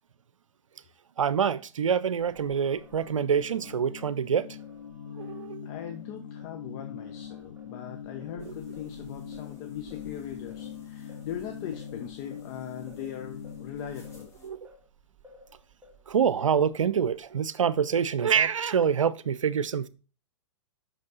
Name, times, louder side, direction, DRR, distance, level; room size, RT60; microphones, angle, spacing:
voice 1, 1.2-4.5 5.2-5.7 8.5-8.6 14.4-14.6 16.1-19.9, right 7 dB, 80° right, 0.6 m, -26 dB
Singing, 2.2-6.6 7.0-17.2 17.6-18.6, equal, 10° right, 2.0 m, -56 dB
sound 1, 2.7-14.3, left 8 dB, 85° left, 0.5 m, -42 dB
voice 2, 5.1-14.3, left 9 dB, 40° left, 1.0 m, -40 dB
sound 2, 8.4-14.5, equal, 15° left, 1.8 m, -57 dB
6.2 x 5.2 x 3.9 m
hypercardioid pair, 115°, 16 cm